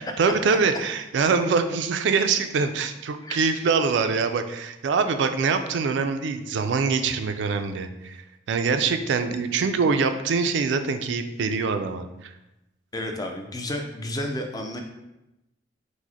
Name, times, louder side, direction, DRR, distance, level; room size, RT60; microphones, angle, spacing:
voice 1, 0.0-8.2 8.5-12.3, right 5 dB, 65° right, 8 dB, 0.3 m, -24 dB
voice 2, 12.9-14.8, left 1 dB, 20° left, 3 dB, 0.4 m, -31 dB
4.8 x 2.1 x 4.0 m, 0.93 s
head